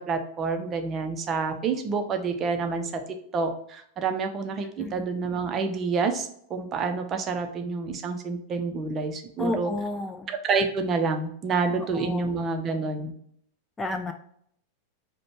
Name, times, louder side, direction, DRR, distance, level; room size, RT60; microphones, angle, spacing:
voice 1, 0.0-2.9 3.3-9.7 10.3-13.1, right 4 dB, 30° right, 6 dB, 0.6 m, -28 dB
voice 2, 9.4-10.3 11.8-12.3 13.8-14.1, left 2 dB, 15° left, 6 dB, 0.4 m, -31 dB
5.1 x 2.2 x 4.3 m, 0.68 s
figure-of-eight pair, 90°, 0 cm